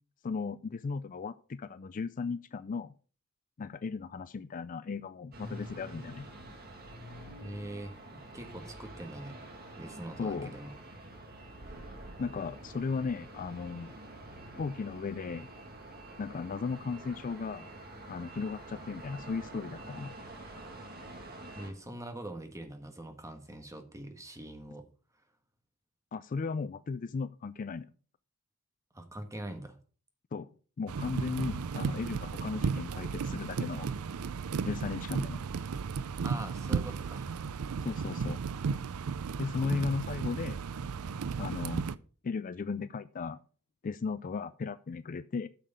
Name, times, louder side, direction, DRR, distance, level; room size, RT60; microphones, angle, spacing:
voice 1, 0.2-2.9 3.6-6.3 10.2-10.5 12.2-13.9 14.6-15.5 16.2-17.7 18.1-20.2 26.1-27.9 30.3-30.5 30.8-33.9 34.6-35.4 37.8-38.4 39.4-40.6 41.4-41.9 42.2-43.4 43.8-45.5, left 4 dB, 40° left, 15 dB, 0.4 m, -36 dB
sound 1, 5.3-21.7, right 1 dB, 45° right, 2.0 m, -47 dB
voice 2, 7.4-9.4 9.8-10.7 21.5-24.8 28.9-29.7 36.2-37.3, right 1 dB, 15° right, 5 dB, 1.4 m, -43 dB
sound 2, 30.9-42.0, right 5 dB, 80° right, 0.5 m, -34 dB
9.0 x 6.6 x 5.2 m, 0.40 s
head